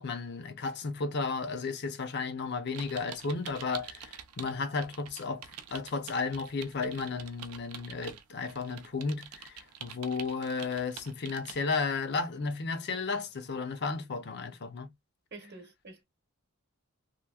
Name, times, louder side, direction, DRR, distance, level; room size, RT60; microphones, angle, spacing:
voice 1, 0.0-14.9, left 4 dB, 50° left, 0.6 m, -34 dB
sound 1, 2.7-4.5 4.8-11.6, right 8 dB, 85° right, 0.5 m, -46 dB
voice 2, 15.3-16.0, right 3 dB, 45° right, 0.9 m, -48 dB
2.9 x 2.6 x 2.3 m
head